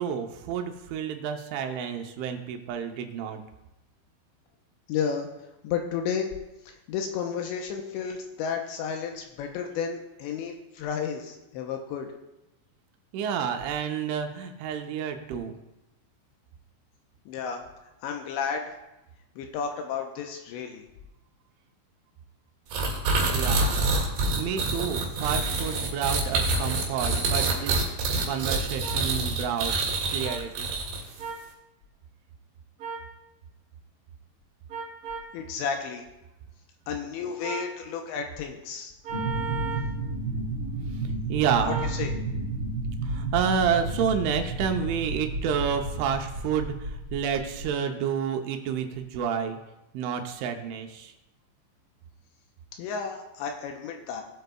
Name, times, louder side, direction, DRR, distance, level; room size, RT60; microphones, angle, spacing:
voice 1, 0.0-3.4 13.1-15.5 23.2-23.8 24.3-27.7 28.2-29.8 30.1-30.7 40.9-41.8 43.0-49.6 49.9-51.1, right 7 dB, 80° right, 5 dB, 3.2 m, -29 dB
voice 2, 4.9-5.3 5.6-6.3 6.7-12.1 17.3-17.6 18.0-18.8 19.4-20.8 35.3-36.1 36.9-38.9 41.6-42.1 52.8-54.2, left 6 dB, 80° left, 4 dB, 2.9 m, -32 dB
sound 1, 22.7-31.2, right 3 dB, 60° right, 3.6 m, -26 dB
sound 2, 28.8-29.0 30.2-30.4 31.2-31.4 32.8-33.1 34.7-35.3 37.4-37.7 39.0-39.9 41.7-42.0, right 5 dB, 45° right, 2.7 m, -35 dB
sound 3, 39.1-47.7, right 2 dB, 25° right, 4.3 m, -32 dB
18.5 x 7.9 x 2.3 m, 0.95 s
omnidirectional pair, 5.5 m